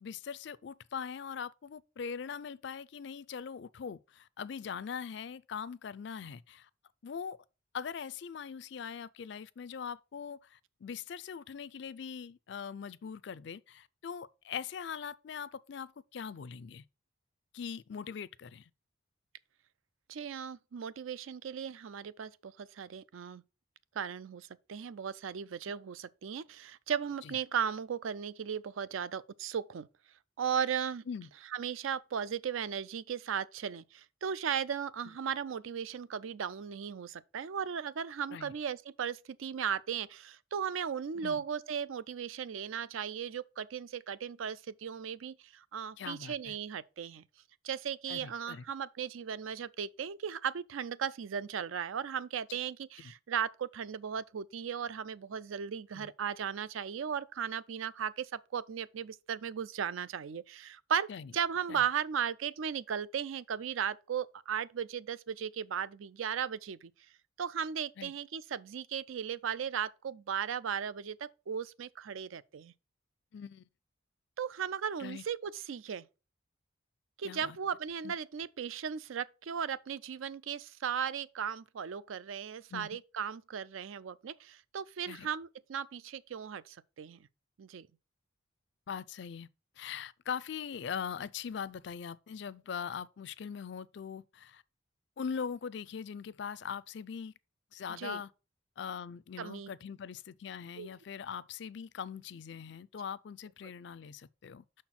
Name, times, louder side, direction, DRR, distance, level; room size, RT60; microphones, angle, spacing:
voice 1, 0.0-6.7 7.0-7.4 7.7-16.8 17.5-18.7 27.2-27.3 31.1-31.3 38.3-38.5 41.2-41.4 46.0-46.5 48.1-48.7 52.5-52.6 53.0-53.1 55.9-56.1 61.1-61.3 61.7-61.8 68.0-68.1 73.3-73.7 75.0-75.2 77.2-77.6 78.0-78.2 82.7-82.9 85.1-85.3 88.9-89.5 89.8-94.6 95.2-97.3 97.7-98.3 98.8-104.8, left 7 dB, 60° left, 0.4 m, -41 dB
voice 2, 20.1-23.4 24.0-29.9 30.4-31.0 31.5-47.2 47.6-66.9 67.4-72.7 74.4-76.1 77.2-87.2 87.6-87.9 98.0-98.2 99.4-99.7 100.8-100.9, right 7 dB, 80° right, 0.4 m, -36 dB
6.1 x 4.4 x 5.7 m
head